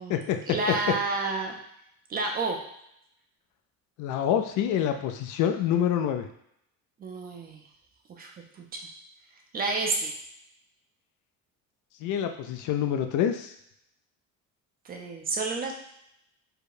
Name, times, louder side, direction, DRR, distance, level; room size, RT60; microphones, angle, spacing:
voice 1, 0.5-1.6 2.1-2.6 7.0-7.6 8.2-8.9 9.5-10.1 14.8-15.7, right 3 dB, 25° right, 2 dB, 0.5 m, -30 dB
voice 2, 4.0-6.3 12.0-13.5, left 9 dB, 60° left, 6 dB, 0.5 m, -26 dB
4.8 x 2.2 x 4.8 m, 0.74 s
cardioid pair, 170°, 34 cm